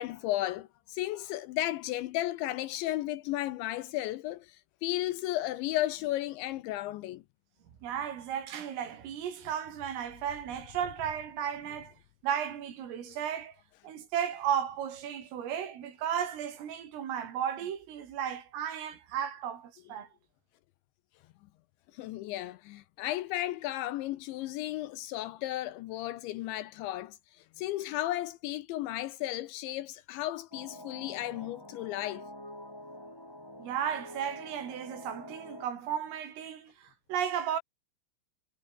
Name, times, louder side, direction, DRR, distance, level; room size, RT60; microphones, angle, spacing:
voice 1, 0.0-4.5 4.8-7.2 22.0-27.2 27.6-32.2, left 15 dB, 75° left, 2.9 m, -34 dB
voice 2, 7.8-11.9 12.2-13.6 13.8-20.1 33.6-37.6, right 9 dB, 80° right, 6.0 m, -34 dB
sound 1, 30.5-35.7, left 1 dB, 5° left, 4.9 m, -47 dB
omnidirectional pair, 5.9 m